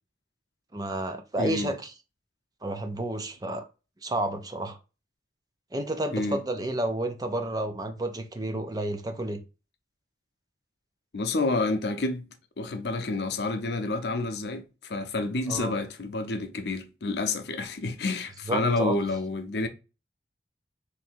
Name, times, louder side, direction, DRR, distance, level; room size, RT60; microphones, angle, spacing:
voice 1, 0.7-1.9 2.6-3.7 4.0-4.8 5.7-9.4 15.5-15.8 18.5-18.9, right 1 dB, 20° right, 0.5 m, -31 dB
voice 2, 1.4-1.7 6.1-6.4 11.1-12.3 12.6-19.7, left 2 dB, 70° left, 0.6 m, -29 dB
3.2 x 2.7 x 4.4 m
head